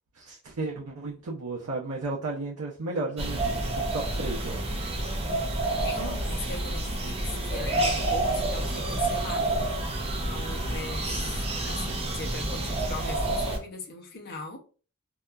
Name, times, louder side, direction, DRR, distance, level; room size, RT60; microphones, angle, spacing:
voice 1, 0.1-4.8, right 3 dB, 90° right, 0.6 m, -34 dB
sound 1, 3.2-13.6, right 2 dB, 25° right, 0.5 m, -29 dB
voice 2, 5.8-9.6 10.2-14.6, left 2 dB, 45° left, 0.6 m, -39 dB
2.8 x 2.3 x 2.2 m
head